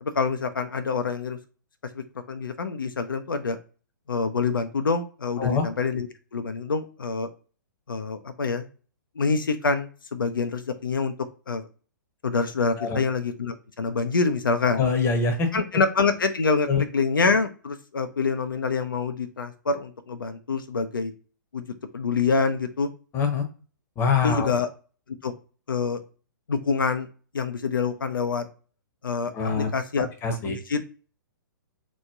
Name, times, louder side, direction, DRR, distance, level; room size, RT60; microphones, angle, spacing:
voice 1, 0.0-1.4 1.9-3.6 4.1-6.1 6.3-7.3 7.9-8.7 9.2-11.1 11.5-11.7 12.2-14.8 15.5-21.1 21.5-21.6 21.9-22.9 24.2-24.7 25.2-25.3 25.7-26.0 26.5-27.1 27.3-28.5 29.0-30.1 30.4-30.9, left 4 dB, 75° left, 8 dB, 0.4 m, -26 dB
voice 2, 14.7-15.5 16.7-16.8 23.1-23.4 24.0-24.5 29.3-29.7 30.2-30.6, left 5 dB, 20° left, 5 dB, 0.8 m, -24 dB
3.0 x 2.1 x 3.5 m, 0.38 s
figure-of-eight pair, 120°, 11 cm